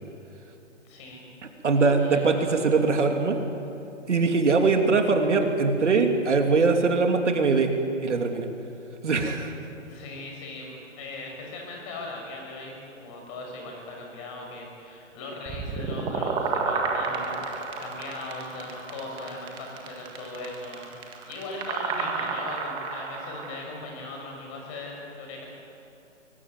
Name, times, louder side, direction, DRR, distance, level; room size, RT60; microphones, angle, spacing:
voice 1, 0.8-1.3 2.0-2.8 9.8-25.4, left 2 dB, 25° left, 0 dB, 6.2 m, -39 dB
voice 2, 1.6-3.4 4.1-7.7 8.0-8.5 9.0-9.5, right 4 dB, 65° right, 4 dB, 3.0 m, -22 dB
sound 1, 15.5-23.6, right 4 dB, 10° right, 1.8 m, -31 dB
23.0 x 18.0 x 9.5 m, 3.0 s
figure-of-eight pair, 150°, 39 cm